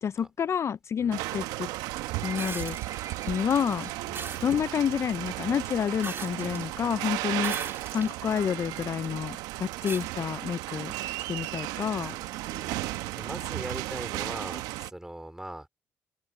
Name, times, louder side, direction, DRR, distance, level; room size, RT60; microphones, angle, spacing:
voice 1, 0.0-1.7 2.2-2.8 3.3-3.9 4.4-12.2, left 8 dB, 45° left, 0.3 m, -29 dB
sound 1, 1.1-14.9, right 17 dB, 85° right, 0.9 m, -35 dB
Livestock farm animals working animals, 1.8-4.4 4.7-5.0 5.3-5.4 6.1-6.2 6.5-6.6 6.8-6.9 7.4-7.7 8.2-8.3 8.6-8.7 8.8-8.9 9.1-9.2 9.7-9.8 10.3-10.4 10.8-10.9, right 7 dB, 60° right, 3.7 m, -45 dB
sound 2, 2.4-2.9 4.1-4.5 6.0-6.6 7.4-8.1 8.8-8.9 9.9-10.1 11.5-11.6, right 5 dB, 40° right, 3.3 m, -38 dB
voice 2, 12.5-12.8 13.1-15.7, right 1 dB, 10° right, 2.9 m, -40 dB
supercardioid pair, 60°, 6 cm